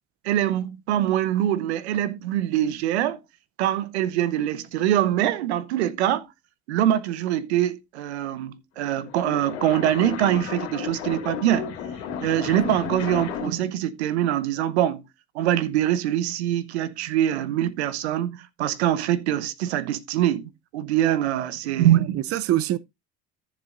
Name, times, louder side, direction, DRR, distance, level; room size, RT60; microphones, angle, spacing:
voice 1, 0.2-3.2 3.6-6.3 6.7-11.7 12.2-15.0 15.3-22.2, right 12 dB, 85° right, 0.8 m, -24 dB
sound 1, 8.8-13.7, left 8 dB, 80° left, 2.6 m, -33 dB
voice 2, 21.6-22.8, right 13 dB, 45° right, 0.6 m, -26 dB
14.0 x 7.3 x 2.5 m
hypercardioid pair, 60°, 32 cm